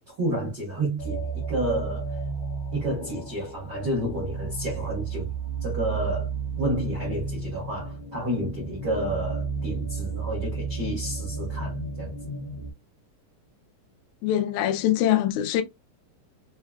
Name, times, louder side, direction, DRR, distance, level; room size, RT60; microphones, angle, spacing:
voice 1, 0.1-2.2 2.7-5.3 5.6-6.3 6.6-12.1, right 1 dB, 80° right, 0.9 m, -30 dB
sound 1, 1.0-12.7, right 4 dB, 65° left, 1.5 m, -32 dB
voice 2, 14.2-15.6, left 12 dB, 85° left, 1.7 m, -23 dB
5.6 x 2.2 x 2.3 m
omnidirectional pair, 4.0 m